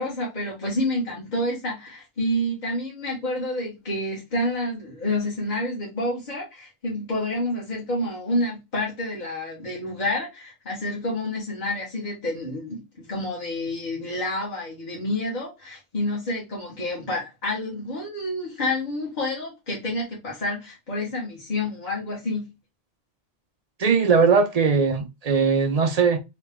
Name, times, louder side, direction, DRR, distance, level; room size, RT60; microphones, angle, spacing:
voice 1, 0.0-22.5, left 1 dB, 45° left, 1.4 m, -29 dB
voice 2, 23.8-26.2, right 5 dB, 50° right, 0.5 m, -20 dB
3.1 x 2.8 x 3.4 m
omnidirectional pair, 1.1 m